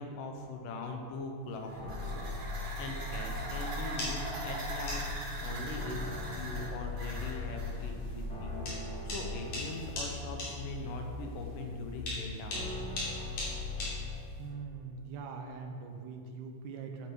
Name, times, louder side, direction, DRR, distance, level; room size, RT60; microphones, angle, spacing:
voice 1, 0.0-5.0 5.4-6.1 6.4-12.8, left 3 dB, 85° left, 3 dB, 2.5 m, -42 dB
sound 1, 1.5-7.8, right 1 dB, 55° right, 2.1 m, -42 dB
sound 2, 1.8-14.1, left 2 dB, 45° left, 1.8 m, -39 dB
sound 3, 4.0-14.5, left 1 dB, 65° left, 3.8 m, -42 dB
voice 2, 14.4-17.1, right 5 dB, 75° right, 3 dB, 2.0 m, -42 dB
8.4 x 7.0 x 4.7 m, 2.4 s
omnidirectional pair, 3.7 m